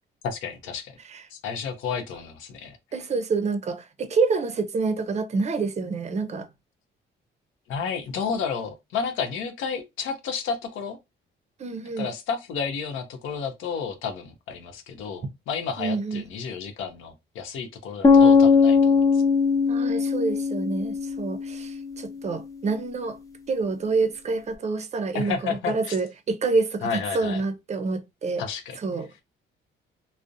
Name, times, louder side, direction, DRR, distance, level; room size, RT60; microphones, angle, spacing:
voice 1, 0.2-0.9 1.3-2.8 7.7-11.0 12.0-19.2 25.1-26.0 26.8-27.4 28.4-28.8, left 6 dB, 85° left, 0.6 m, -31 dB
voice 2, 2.9-6.5 11.6-12.1 15.8-16.2 19.7-23.2 23.5-28.4 28.8-29.1, right 4 dB, 35° right, 0.5 m, -27 dB
sound 1, 18.0-22.0, left 5 dB, 15° left, 0.5 m, -19 dB
2.4 x 2.0 x 2.6 m
cardioid pair, 90°, 20 cm